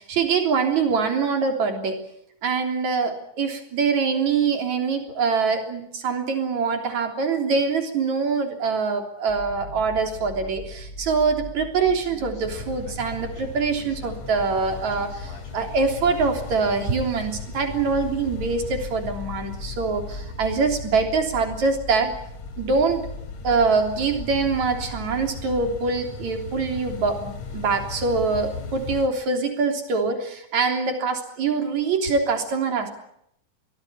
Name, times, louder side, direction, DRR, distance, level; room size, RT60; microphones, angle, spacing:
voice 1, 0.0-2.0 2.4-22.1 22.6-23.1 23.4-32.9, right 4 dB, 65° right, 5 dB, 4.7 m, -24 dB
sound 1, 9.3-25.8, left 2 dB, 30° left, 4.3 m, -39 dB
sound 2, 12.4-29.1, left 5 dB, 80° left, 4.0 m, -38 dB
24.0 x 19.0 x 10.0 m, 0.76 s
omnidirectional pair, 3.6 m